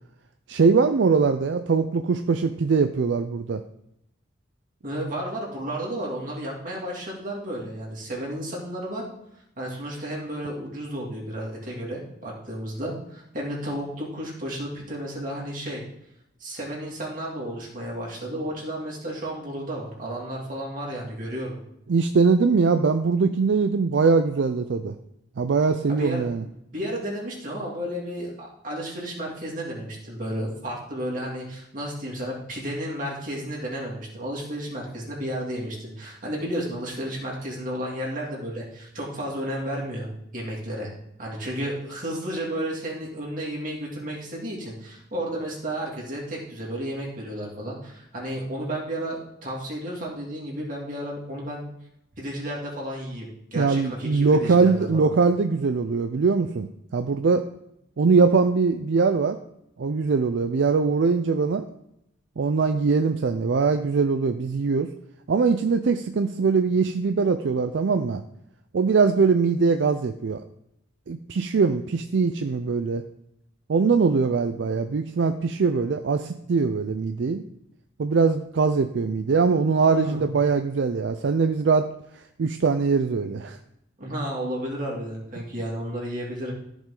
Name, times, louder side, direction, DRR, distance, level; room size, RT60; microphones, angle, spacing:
voice 1, 0.5-3.6 21.9-24.9 25.4-26.4 53.6-57.5 58.0-59.4 59.8-61.7 62.4-64.9 65.3-68.2 68.7-70.4 71.1-73.0 73.7-77.4 78.0-81.8 82.4-83.6, right 4 dB, 70° right, 9 dB, 0.4 m, -22 dB
voice 2, 4.8-9.0 9.6-15.8 16.4-21.6 25.9-26.2 26.7-40.1 40.3-40.9 41.2-51.6 52.2-55.1 79.9-80.4 84.0-86.5, right 1 dB, 45° right, -3 dB, 2.5 m, -32 dB
14.0 x 5.1 x 3.8 m, 0.80 s
head